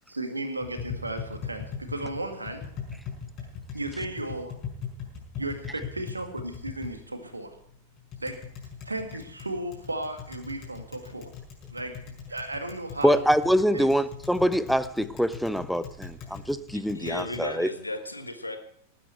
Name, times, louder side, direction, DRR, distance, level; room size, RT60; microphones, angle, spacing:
voice 1, 0.1-2.7 3.7-4.6 5.4-7.6 8.2-8.4 8.9-11.3 11.7-13.2 13.7-13.9, right 2 dB, 80° right, 2.0 m, -35 dB
Tap, 0.6-17.4, left 6 dB, 35° left, 5.5 m, -41 dB
voice 2, 13.0-17.7, equal, ahead, 0.6 m, -24 dB
voice 3, 16.7-18.6, left 1 dB, 85° left, 1.4 m, -35 dB
19.5 x 9.3 x 4.6 m
figure-of-eight pair, 90°, 0 cm